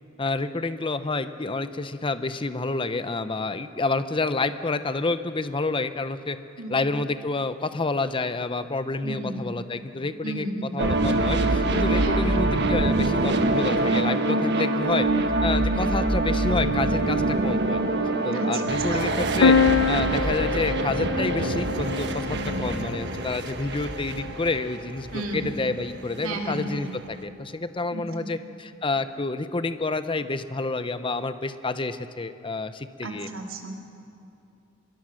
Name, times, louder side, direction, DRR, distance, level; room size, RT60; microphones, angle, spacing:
voice 1, 0.2-6.4 6.7-15.1 15.4-17.8 18.2-19.6 19.9-33.3, left 3 dB, 25° left, 11 dB, 0.7 m, -29 dB
voice 2, 9.0-9.5 10.2-10.7 12.0-12.4 15.7-15.9 18.3-18.6 18.9-19.2 22.3-22.7 25.1-25.5 26.2-26.8 27.9-28.0 33.0-33.8, right 2 dB, 85° right, 2 dB, 2.8 m, -33 dB
sound 1, 10.8-27.2, right 2 dB, 55° right, 1.4 m, -25 dB
sound 2, 19.4-23.2, left 6 dB, 70° left, 0.6 m, -24 dB
25.0 x 21.5 x 6.4 m, 2.6 s
head